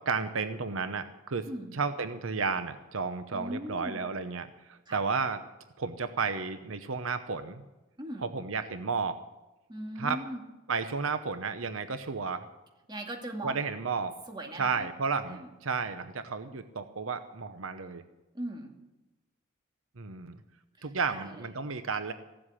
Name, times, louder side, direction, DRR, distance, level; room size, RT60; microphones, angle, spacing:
voice 1, 0.1-1.5 1.7-5.4 5.8-7.6 8.2-9.2 10.0-10.2 10.7-12.4 13.4-14.1 14.6-18.0 20.0-20.4 20.8-22.1, right 4 dB, 80° right, 10 dB, 0.9 m, -32 dB
voice 2, 3.3-4.0 4.9-5.0 8.0-8.3 9.7-10.4 12.9-13.6 14.3-14.9 15.3-15.5 18.3-18.7 21.1-21.4, right 1 dB, 20° right, 2 dB, 2.1 m, -39 dB
15.5 x 7.8 x 9.9 m, 1.0 s
head